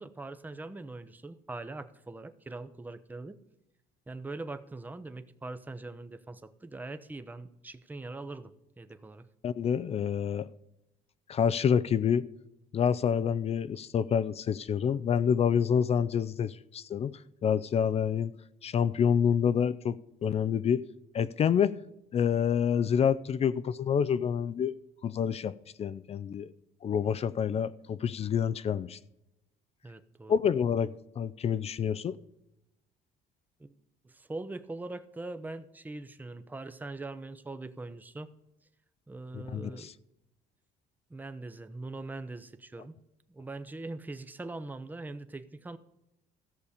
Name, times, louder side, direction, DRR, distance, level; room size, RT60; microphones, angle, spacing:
voice 1, 0.0-3.4 4.1-9.3 29.8-30.3 33.6-33.7 34.0-38.3 39.1-39.9 41.1-42.9 43.3-45.8, right 2 dB, 10° right, 0.6 m, -42 dB
voice 2, 9.4-10.5 11.3-12.2 12.7-18.3 18.6-20.8 21.1-21.7 22.1-24.8 25.0-26.5 26.8-29.0 30.3-32.1 39.3-39.9, left 7 dB, 40° left, 0.4 m, -28 dB
14.5 x 6.8 x 5.0 m
cardioid pair, 110°, 17 cm